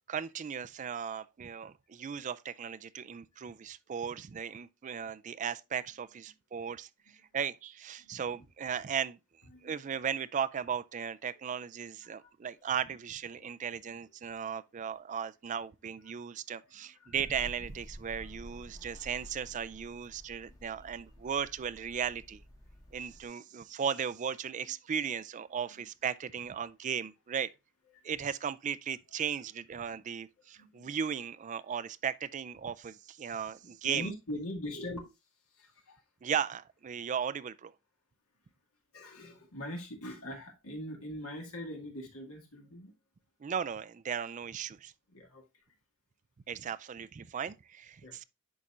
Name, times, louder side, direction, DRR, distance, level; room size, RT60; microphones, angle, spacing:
voice 1, 0.1-6.9 7.3-9.2 9.6-22.4 22.9-27.5 28.0-34.1 36.2-37.7 43.4-44.9 46.5-48.2, right 7 dB, 35° right, 0.3 m, -36 dB
voice 2, 8.0-8.5 9.4-9.9 12.1-12.3 13.4-13.5 16.6-17.2 20.4-20.9 25.0-25.2 25.7-25.8 27.9-28.1 29.2-29.4 29.7-30.0 30.4-31.0 33.6-35.0 35.5-36.0 38.9-42.9 45.1-45.4 48.0-48.2, left 1 dB, 75° left, 2.1 m, -43 dB
sound 1, 17.1-23.2, equal, 15° left, 1.4 m, -50 dB
11.0 x 4.2 x 2.4 m
head